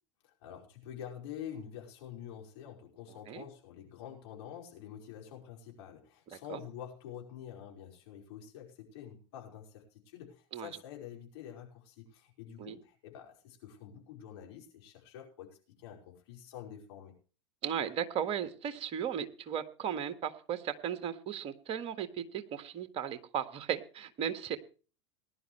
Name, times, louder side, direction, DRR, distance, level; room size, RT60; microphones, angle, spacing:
voice 1, 0.2-15.5 15.8-17.1, left 9 dB, 60° left, 1 dB, 5.1 m, -47 dB
voice 2, 17.6-24.6, right 9 dB, 40° right, 9 dB, 1.7 m, -36 dB
19.5 x 11.0 x 3.2 m, 0.37 s
figure-of-eight pair, 85°, 15 cm